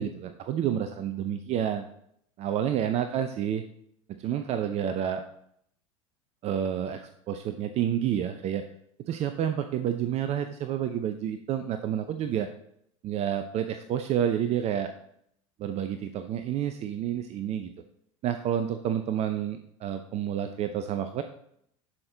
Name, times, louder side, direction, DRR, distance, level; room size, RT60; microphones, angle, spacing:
voice 1, 0.0-1.9 2.4-3.6 4.1-5.2 6.4-8.6 9.1-12.5 13.0-14.9 15.6-17.7 18.2-21.2, right 9 dB, 40° right, 9 dB, 0.6 m, -29 dB
10.5 x 5.9 x 3.9 m, 0.71 s
figure-of-eight pair, 75°, 17 cm